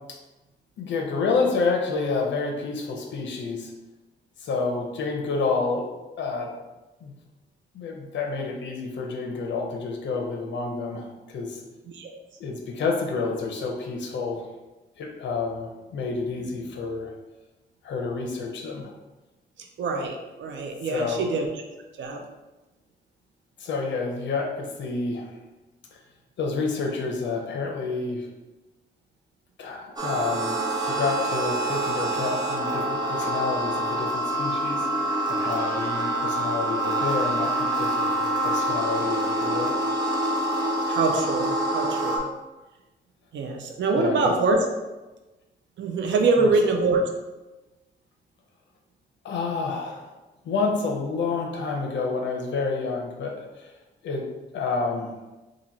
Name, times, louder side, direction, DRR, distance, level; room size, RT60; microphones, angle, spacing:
voice 1, 0.8-3.7 4.4-5.9 6.2-6.5 7.0-7.1 7.7-11.6 12.4-14.4 15.0-17.1 17.8-18.9 20.9-21.3 23.6-25.3 25.9-26.0 26.4-28.3 29.6-34.9 35.3-39.8 44.0-44.3 46.4-46.5 49.2-50.1 50.4-53.7 54.0-54.2 54.5-55.1, left 4 dB, 80° left, 1 dB, 0.7 m, -29 dB
voice 2, 19.6-21.6 22.0-22.2 40.9-42.3 43.3-44.6 45.8-47.0, right 3 dB, 80° right, 3 dB, 0.6 m, -24 dB
sound 1, 30.0-42.2, right 1 dB, 20° right, 0.7 m, -26 dB
3.0 x 2.6 x 4.0 m, 1.1 s
wide cardioid pair, 130°, 19 cm